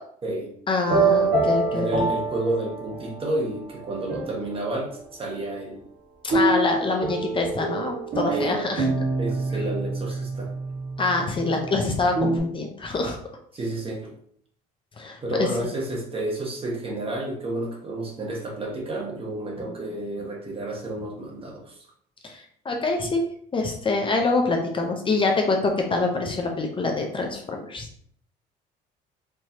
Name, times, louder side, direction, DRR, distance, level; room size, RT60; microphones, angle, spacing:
voice 1, 0.7-1.9 6.2-8.9 11.0-13.2 15.0-15.5 22.2-23.2 23.5-27.9, left 3 dB, 30° left, 2 dB, 0.7 m, -25 dB
sound 1, 0.8-3.2 3.8-4.7 6.3-12.4, right 3 dB, 55° right, 1.4 m, -26 dB
voice 2, 1.7-5.8 8.3-8.7 9.2-10.5 13.5-14.1 15.2-21.9, right 1 dB, 35° right, -1 dB, 1.3 m, -30 dB
4.5 x 3.0 x 2.8 m, 0.64 s
cardioid pair, 110°, 17 cm